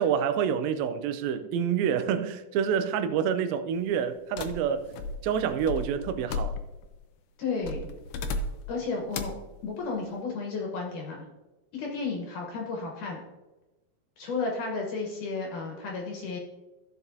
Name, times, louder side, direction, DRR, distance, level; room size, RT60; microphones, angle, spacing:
voice 1, 0.0-4.9 5.2-6.6, right 8 dB, 80° right, 2.3 m, -27 dB
sound 1, 4.4-6.9 7.6-8.8 9.1-9.5, left 3 dB, 80° left, 1.9 m, -35 dB
voice 2, 7.4-7.9 8.7-9.3 9.6-11.3 11.7-13.2 14.2-16.4, left 4 dB, 65° left, 2.5 m, -33 dB
14.5 x 5.9 x 2.7 m
omnidirectional pair, 4.3 m